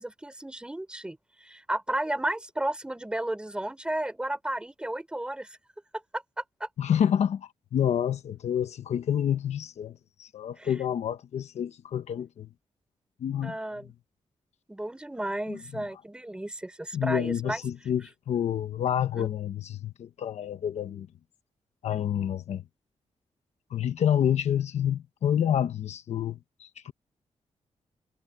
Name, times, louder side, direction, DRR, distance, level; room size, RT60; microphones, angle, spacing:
voice 1, 0.0-5.6 6.1-6.2 6.6-6.7 10.6-10.8 13.4-13.9 14.7-17.6 19.2-19.3, right 1 dB, 10° right, 5.3 m, -33 dB
voice 2, 6.8-9.9 10.2-12.5 13.2-13.5 15.5-15.6 16.9-21.1 21.8-22.6 23.7-26.9, left 9 dB, 70° left, 1.2 m, -28 dB
wide cardioid pair, 170°, 12 cm